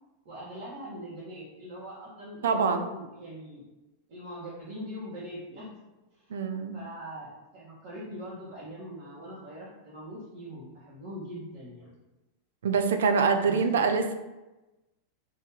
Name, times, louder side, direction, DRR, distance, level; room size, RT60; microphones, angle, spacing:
voice 1, 0.2-3.6 4.1-5.7 6.1-6.2 6.7-11.9 13.4-13.9, equal, 65° right, -10 dB, 1.3 m, -42 dB
voice 2, 2.4-2.9 6.3-6.8 12.6-14.1, right 5 dB, 85° right, 8 dB, 0.4 m, -25 dB
3.0 x 2.7 x 3.7 m, 1.0 s
hypercardioid pair, 115°, 0 cm